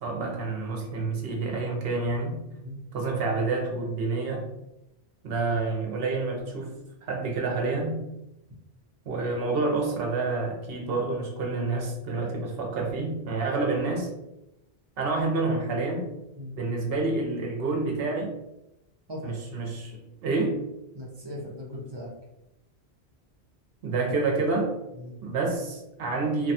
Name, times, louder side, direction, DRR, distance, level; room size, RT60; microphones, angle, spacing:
voice 1, 0.0-2.4 2.9-4.5 5.2-6.8 7.0-8.0 9.1-14.1 15.0-16.1 16.5-18.3 19.2-20.6 23.8-24.7 25.2-26.5, right 3 dB, 65° right, 1 dB, 0.9 m, -28 dB
voice 2, 20.9-22.1 24.9-25.2, left 1 dB, 30° right, -3 dB, 0.5 m, -38 dB
2.8 x 2.2 x 2.6 m, 0.90 s
omnidirectional pair, 1.1 m